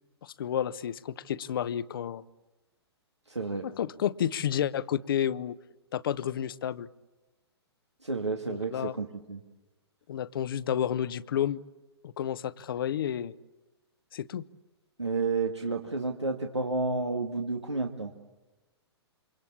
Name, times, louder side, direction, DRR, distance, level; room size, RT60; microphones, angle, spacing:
voice 1, 0.2-2.2 3.6-5.6 5.9-6.9 8.5-8.9 10.1-11.6 12.0-13.3 14.1-14.4, left 10 dB, 55° left, 17 dB, 0.9 m, -31 dB
voice 2, 3.3-3.7 8.0-9.4 15.0-18.1, right 3 dB, 85° right, 3 dB, 2.1 m, -31 dB
28.0 x 25.0 x 8.5 m, 1.1 s
figure-of-eight pair, 115°, 14 cm